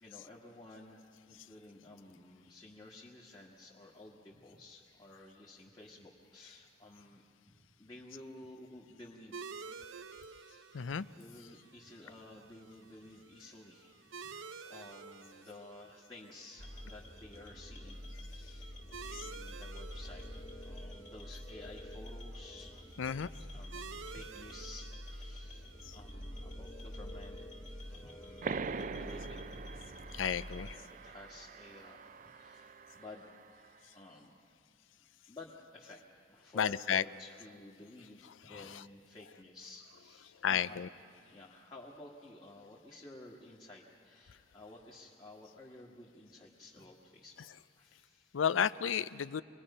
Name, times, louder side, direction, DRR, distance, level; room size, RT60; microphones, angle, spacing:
voice 1, 0.0-9.9 10.3-18.1 18.3-18.8 19.0-20.3 20.6-27.4 27.8-30.0 30.2-33.3 33.9-34.3 35.3-36.0 36.3-40.8 41.3-47.4 47.8-48.3, left 2 dB, 25° left, -4 dB, 1.7 m, -53 dB
sound 1, 9.3-28.5, right 5 dB, 90° right, 0.8 m, -52 dB
voice 2, 10.7-11.1 23.0-23.3 25.9-26.0 30.1-30.7 36.6-37.0 40.4-40.9 48.3-49.4, left 7 dB, 85° left, 16 dB, 0.5 m, -32 dB
sound 2, 16.6-30.7, equal, 40° left, 2.7 m, -47 dB
sound 3, 28.4-33.7, right 5 dB, 40° right, 0.4 m, -43 dB
26.0 x 20.0 x 5.6 m, 2.3 s
head